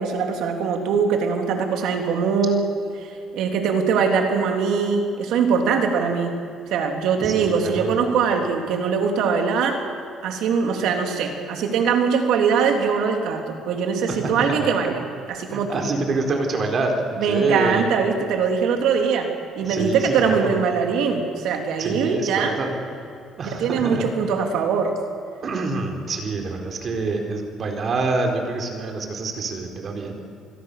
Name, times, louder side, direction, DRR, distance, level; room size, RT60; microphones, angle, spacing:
voice 1, 0.0-2.7 2.9-6.4 6.7-9.8 10.2-15.8 17.2-19.3 19.6-22.6 23.4-25.0, right 6 dB, 75° right, 3 dB, 3.5 m, -22 dB
voice 2, 7.2-7.9 14.1-14.7 15.5-17.0 17.3-18.0 19.6-20.6 21.8-22.7 23.4-24.1 25.4-30.2, right 3 dB, 40° right, 3 dB, 4.2 m, -26 dB
27.5 x 21.5 x 6.9 m, 2.5 s
cardioid pair, 130°, 0 cm